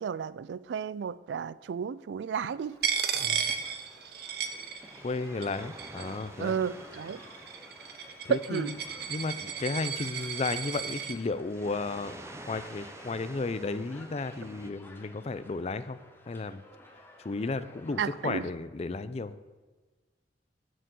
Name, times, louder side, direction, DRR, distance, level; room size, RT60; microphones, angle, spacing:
voice 1, 0.0-2.8 6.4-7.2 8.3-8.7 18.0-18.4, right 7 dB, 80° right, 0.3 m, -32 dB
sound 1, 2.4-18.5, left 1 dB, 15° left, 0.8 m, -54 dB
Coin (dropping), 2.8-5.2 5.4-6.2 6.9-11.2, right 7 dB, 60° right, 0.7 m, -34 dB
sound 2, 3.1-14.7, right 2 dB, 15° right, 0.5 m, -50 dB
voice 2, 5.0-6.6 8.2-8.7 9.1-12.2 12.5-16.0 16.3-16.6 17.2-19.3, left 3 dB, 35° left, 0.4 m, -33 dB
6.8 x 6.4 x 7.6 m
head